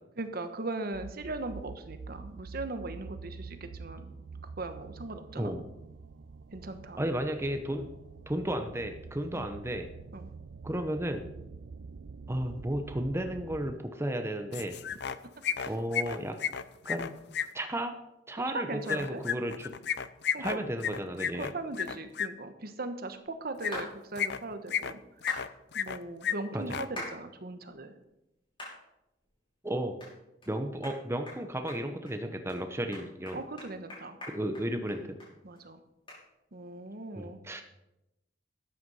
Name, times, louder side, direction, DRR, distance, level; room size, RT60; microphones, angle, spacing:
voice 1, 0.2-4.1 4.4-5.5 6.5-7.0 9.3-9.5 10.1-10.3 15.6-15.7 18.5-19.2 20.3-20.6 21.3-25.0 25.7-27.9 33.3-34.2 35.4-35.8 36.5-37.6, right 2 dB, 55° right, 8 dB, 1.2 m, -39 dB
sound 1, 0.9-13.8, right 4 dB, 85° right, 0.5 m, -46 dB
voice 2, 7.0-7.9 8.3-9.9 10.6-11.3 12.3-14.8 15.7-16.4 16.8-17.1 17.5-17.9 18.3-19.7 20.4-21.5 26.5-26.8 29.6-30.0 30.5-33.4 34.3-35.0 37.1-37.6, right 1 dB, 15° right, 6 dB, 0.9 m, -33 dB
sound 2, 14.5-15.2 15.4-17.5 18.9-22.3 23.6-23.8 24.2-24.9 25.2-26.0 26.2-26.3 26.6-26.9, left 8 dB, 65° left, 0.6 m, -32 dB
sound 3, 23.7-23.9 25.3-25.4 27.0-27.2 27.7-27.8 28.6-28.8 29.2-29.3 30.0-30.1 30.4-30.5 30.8-31.0 31.3-31.4 31.7-32.1 32.5-32.6 32.9-35.3 35.6-35.7 36.1-36.2, left 1 dB, 30° left, 5.8 m, -42 dB
13.0 x 9.2 x 5.6 m, 0.91 s
head